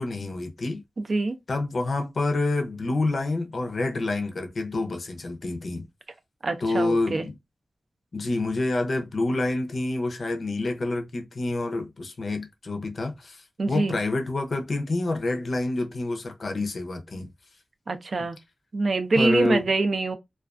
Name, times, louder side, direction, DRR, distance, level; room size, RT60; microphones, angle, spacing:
voice 1, 0.0-0.8 1.5-5.8 6.6-7.3 8.1-17.3 18.2-18.3 19.2-19.7, left 2 dB, 60° left, 0.5 m, -28 dB
voice 2, 1.0-1.3 6.4-7.3 13.6-14.0 17.9-18.4 18.7-20.2, right 3 dB, 50° right, 0.4 m, -24 dB
2.3 x 2.3 x 2.4 m
wide cardioid pair, 120°, 0 cm